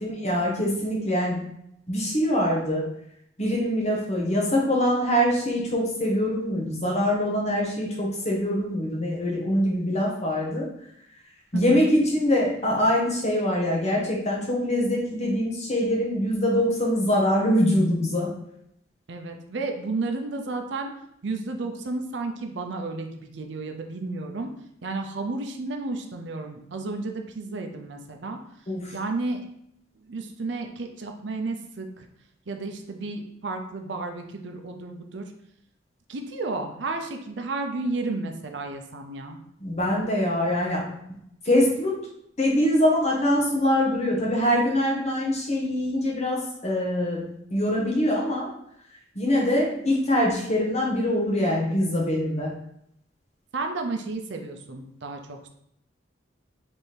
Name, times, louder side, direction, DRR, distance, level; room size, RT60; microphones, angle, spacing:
voice 1, 0.0-1.5 1.9-2.8 3.4-10.6 11.5-18.3 28.7-28.9 39.6-41.0 41.4-42.0 42.4-48.5 49.1-52.5, left 1 dB, 35° left, -3 dB, 1.2 m, -24 dB
voice 2, 19.1-20.9 21.2-24.5 24.8-28.4 28.9-29.4 30.0-32.1 32.5-35.3 36.1-39.4 53.5-55.5, right 3 dB, 65° right, 4 dB, 0.6 m, -32 dB
3.4 x 3.4 x 4.3 m, 0.75 s
head